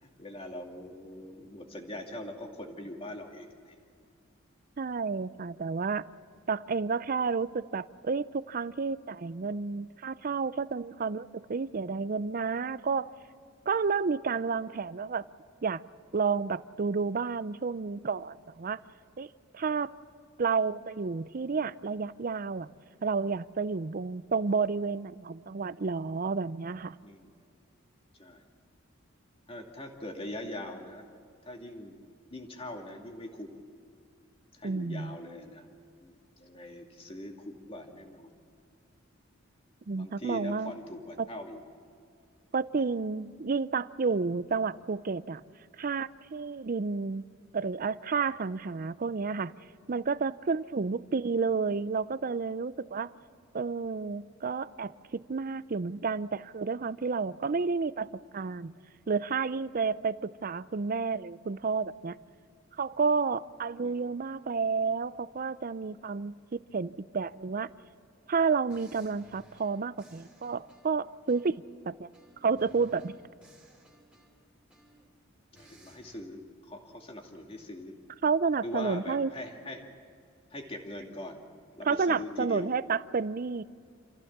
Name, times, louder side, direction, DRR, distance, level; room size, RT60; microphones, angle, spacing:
voice 1, 0.0-3.8 27.0-27.3 28.1-28.4 29.5-31.0 31.4-32.0 32.3-33.6 34.5-35.6 36.0-38.3 40.0-41.6 63.8-64.1 75.5-78.0 78.6-79.8 80.5-81.5 81.7-82.7, left 1 dB, 30° left, 2 dB, 2.4 m, -42 dB
voice 2, 4.8-6.1 6.5-13.1 13.7-15.2 15.6-15.8 16.1-18.8 19.2-19.3 19.5-19.9 20.4-22.7 23.0-27.0 34.6-35.2 39.9-40.7 41.2-41.3 42.5-45.4 45.8-47.2 47.5-49.5 49.9-53.1 53.5-58.7 59.1-62.2 62.8-66.3 66.7-67.7 68.3-72.1 72.4-73.2 78.2-79.3 81.9-83.6, right 5 dB, 45° right, 17 dB, 0.5 m, -30 dB
sound 1, 68.1-68.3 68.7-71.7 72.1-75.2 75.5-76.2, right 1 dB, 5° right, 3.1 m, -59 dB
27.5 x 15.0 x 7.3 m, 2.3 s
head